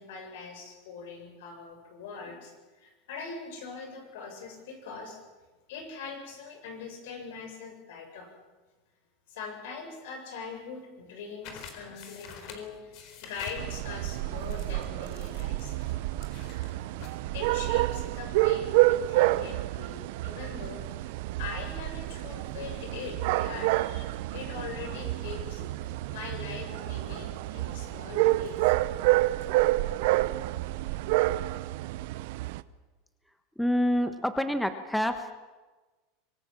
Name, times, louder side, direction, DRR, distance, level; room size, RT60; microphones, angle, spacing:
voice 1, 0.0-5.2 5.7-8.3 9.3-15.8 16.5-16.9 17.3-28.6, left 5 dB, 75° left, 4 dB, 7.4 m, -42 dB
sound 1, 11.4-17.2, left 7 dB, 55° left, 4.3 m, -48 dB
sound 2, 13.6-32.6, right 18 dB, 65° right, 0.8 m, -29 dB
voice 2, 33.6-35.3, equal, ahead, 8 dB, 1.3 m, -27 dB
25.0 x 19.0 x 7.6 m, 1.2 s
supercardioid pair, 135°, 0 cm